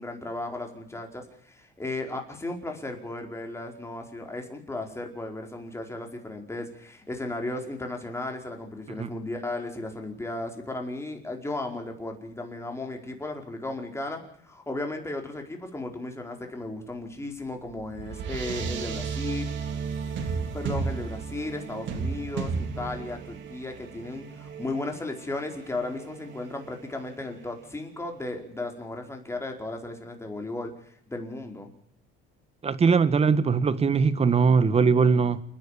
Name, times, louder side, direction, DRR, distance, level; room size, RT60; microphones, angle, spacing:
voice 1, 0.0-19.5 20.5-31.7, left 2 dB, 10° left, 4.8 m, -35 dB
sound 1, 17.2-27.8, right 5 dB, 60° right, 3.5 m, -35 dB
voice 2, 32.6-35.4, right 5 dB, 30° right, 1.6 m, -21 dB
28.5 x 10.5 x 8.6 m
cardioid pair, 110°, 21 cm